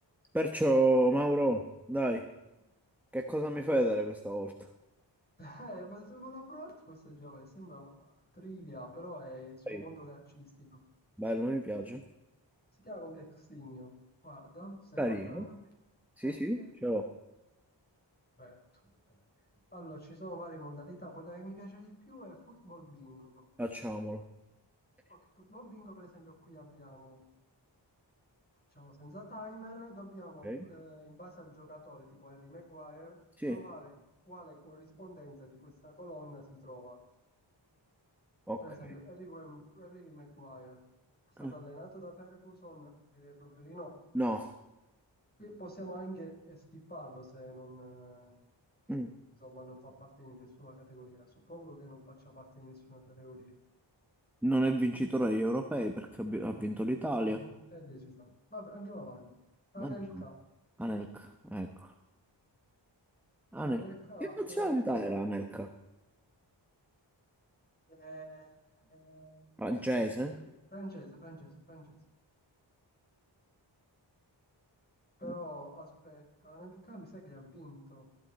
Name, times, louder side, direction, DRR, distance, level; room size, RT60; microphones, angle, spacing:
voice 1, 0.3-2.2 3.1-4.5 9.7-9.8 11.2-12.0 15.0-15.5 16.2-17.0 23.6-24.2 30.4-30.6 33.4-33.6 38.5-38.6 41.4-41.5 44.1-44.5 48.9-49.1 54.4-57.4 59.8-60.0 60.8-61.9 63.5-63.8 64.4-65.7 69.6-70.4, right 1 dB, 5° right, 5 dB, 1.0 m, -31 dB
voice 2, 5.4-10.8 12.8-13.9 14.2-15.6 16.2-16.7 18.4-18.6 18.8-19.2 19.7-23.5 25.1-27.2 28.7-33.2 33.4-33.9 34.2-37.0 38.6-40.8 41.4-43.9 45.4-48.4 49.4-53.6 57.3-59.3 59.7-60.3 63.6-65.1 67.9-69.6 70.2-72.0 75.2-78.1, equal, 20° left, 0 dB, 4.2 m, -48 dB
15.5 x 11.5 x 4.2 m, 0.98 s
wide cardioid pair, 60°, 45 cm